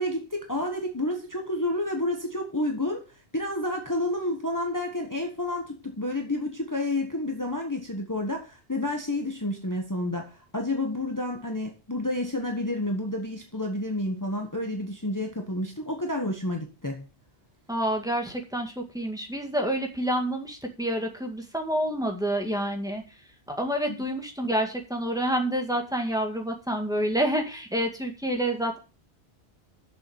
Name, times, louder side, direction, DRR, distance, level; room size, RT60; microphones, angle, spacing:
voice 1, 0.0-3.0 3.3-17.1 23.9-24.0 28.3-28.4, left 1 dB, 15° left, 1.3 m, -30 dB
voice 2, 17.7-23.0 23.5-28.8, right 1 dB, 5° right, 1.9 m, -28 dB
7.1 x 6.9 x 7.1 m
omnidirectional pair, 1.2 m